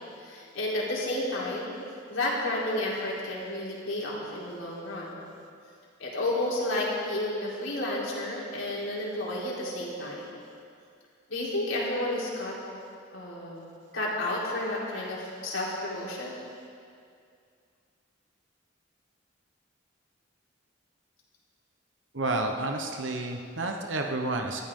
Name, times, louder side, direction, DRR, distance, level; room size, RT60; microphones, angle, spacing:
voice 1, 0.2-1.7 2.1-5.3 6.0-10.2 11.3-12.5 13.1-16.4, left 1 dB, 90° left, -5 dB, 4.1 m, -31 dB
voice 2, 22.1-24.6, right 2 dB, 75° right, 3 dB, 1.1 m, -30 dB
23.0 x 14.5 x 3.8 m, 2.3 s
head